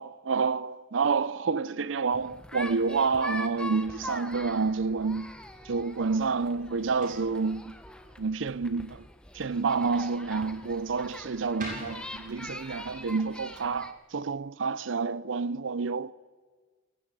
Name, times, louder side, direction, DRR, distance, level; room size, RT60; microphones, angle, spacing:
voice 1, 0.0-5.3 5.7-7.7 8.2-9.0 9.3-16.1, right 4 dB, 75° right, 0.6 m, -29 dB
sound 1, 2.1-13.9, left 1 dB, 5° left, 1.1 m, -43 dB
sound 2, 5.8-15.0, right 1 dB, 45° right, 7.2 m, -50 dB
22.0 x 16.0 x 8.9 m
head